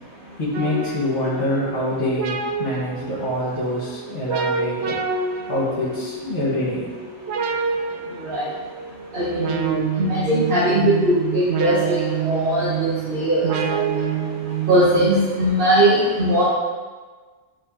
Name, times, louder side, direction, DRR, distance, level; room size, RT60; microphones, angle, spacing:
voice 1, 0.4-4.9 5.5-6.9, left 1 dB, 40° left, -10 dB, 1.6 m, -25 dB
sound 1, 0.5-15.5, right 6 dB, 75° right, 0.9 m, -28 dB
voice 2, 9.1-9.8 10.1-13.5 14.7-16.4, right 1 dB, 50° right, -6 dB, 1.2 m, -19 dB
9.0 x 4.5 x 2.9 m, 1.4 s
omnidirectional pair, 1.1 m